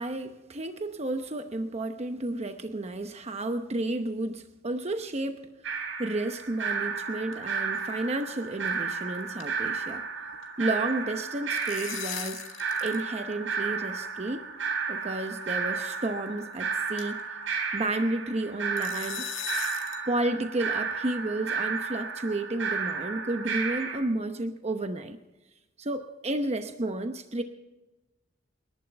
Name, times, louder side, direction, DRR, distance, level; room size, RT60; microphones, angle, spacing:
voice 1, 0.0-5.4 6.0-10.0 10.6-12.4 12.8-14.4 14.9-17.2 17.7-19.3 20.1-25.2 25.8-27.4, right 2 dB, 35° right, 7 dB, 0.9 m, -31 dB
sound 1, 5.6-24.0, right 5 dB, 90° right, 3.3 m, -33 dB
sound 2, 6.7-7.5 7.8-7.9 8.2-8.3 8.7-8.9 9.1-10.5 11.3-13.0 13.3-13.4 14.3-14.4 15.2-15.4 15.9-16.0 16.4-16.5 17.0-17.3 18.8-20.1, left 11 dB, 85° left, 1.8 m, -39 dB
29.0 x 11.0 x 3.4 m, 1.1 s
head